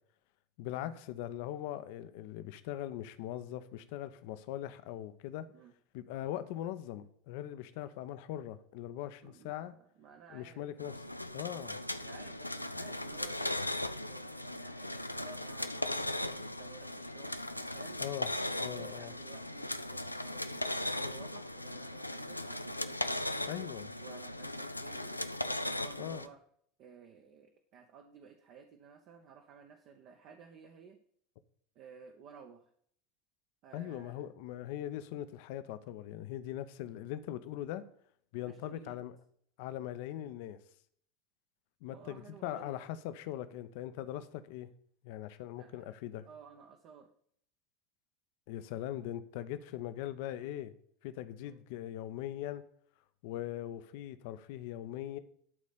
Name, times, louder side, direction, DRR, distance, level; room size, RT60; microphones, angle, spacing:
voice 1, 0.6-5.5 5.9-9.7 10.3-11.0 11.3-11.8 18.0-18.3 18.6-19.1 23.5-23.9 26.0-26.2 33.7-37.8 38.3-39.1 39.6-40.6 41.8-44.7 45.0-46.3 48.5-50.7 51.0-52.6 53.2-55.2, left 12 dB, 55° left, 12 dB, 0.7 m, -41 dB
voice 2, 9.2-10.7 12.0-13.6 14.1-18.0 18.7-23.4 24.0-26.4 26.8-31.0 31.7-32.7 33.6-34.3 38.4-39.0 41.9-42.8 45.6-46.0 46.2-47.1 51.4-51.6, right 6 dB, 45° right, 5 dB, 0.9 m, -55 dB
sound 1, 10.8-26.3, left 1 dB, 90° left, 0.4 m, -38 dB
12.0 x 4.2 x 6.7 m, 0.63 s
figure-of-eight pair, 80°, 0 cm